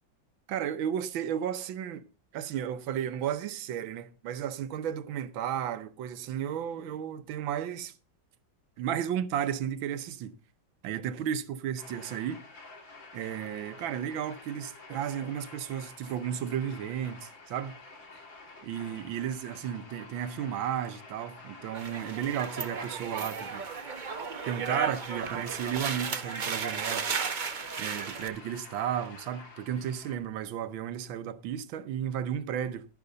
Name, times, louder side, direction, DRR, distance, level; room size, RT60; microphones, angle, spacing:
voice 1, 0.5-2.1 2.3-8.0 8.8-10.4 10.8-12.4 13.1-17.8 18.6-23.7 24.4-27.1 27.8-32.9, right 9 dB, 85° right, 1.6 m, -33 dB
sound 1, 11.8-30.2, left 3 dB, 75° left, 3.6 m, -50 dB
sound 2, 21.7-28.3, right 5 dB, 50° right, 0.5 m, -34 dB
12.0 x 11.5 x 3.9 m
omnidirectional pair, 2.1 m